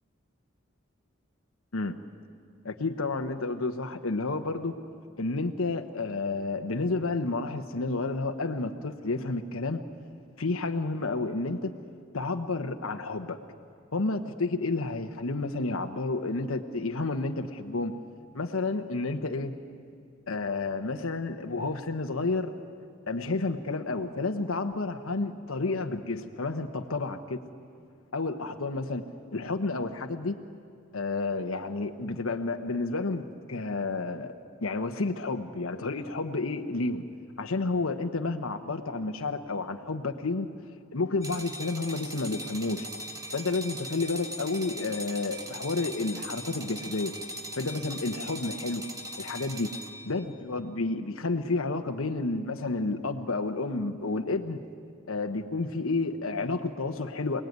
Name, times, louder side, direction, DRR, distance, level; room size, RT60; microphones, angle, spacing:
voice 1, 2.6-4.8 5.2-9.8 10.4-11.7 12.1-13.4 13.9-17.9 18.3-19.5 20.3-22.5 23.1-27.4 28.1-29.1 29.3-30.4 30.9-34.3 34.6-37.0 37.4-40.5 40.9-42.9 43.3-47.1 47.6-48.8 49.2-49.7 50.0-54.6 55.1-57.4, left 3 dB, 90° left, 5 dB, 1.1 m, -30 dB
sound 1, 41.2-50.2, equal, 15° right, 1.6 m, -40 dB
28.5 x 19.5 x 9.4 m, 2.4 s
head